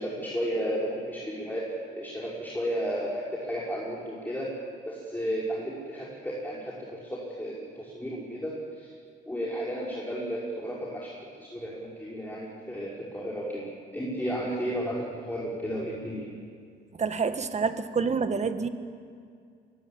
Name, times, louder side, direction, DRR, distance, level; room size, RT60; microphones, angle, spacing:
voice 1, 0.0-1.7 2.0-4.5 4.9-8.9 9.3-13.7 13.9-16.3, equal, 10° left, -5 dB, 5.3 m, -33 dB
voice 2, 17.0-18.7, right 5 dB, 35° right, 9 dB, 1.7 m, -27 dB
24.0 x 19.0 x 8.8 m, 2.2 s
cardioid pair, 90°, 20 cm